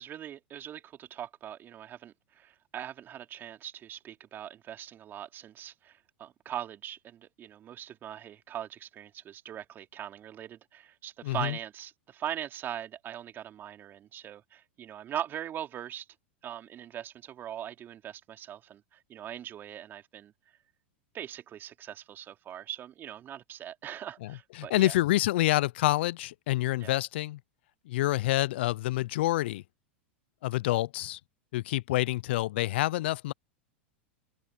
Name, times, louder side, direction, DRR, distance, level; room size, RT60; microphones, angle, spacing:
voice 1, 0.0-16.1 16.4-18.8 19.1-20.3 21.1-24.9 26.8-27.0, right 10 dB, 35° right, 3.5 m, -41 dB
voice 2, 11.2-11.6 24.2-27.4 27.9-29.6 30.4-31.2 31.5-33.3, left 16 dB, 65° left, 0.5 m, -27 dB
hypercardioid pair, 100°, 6 cm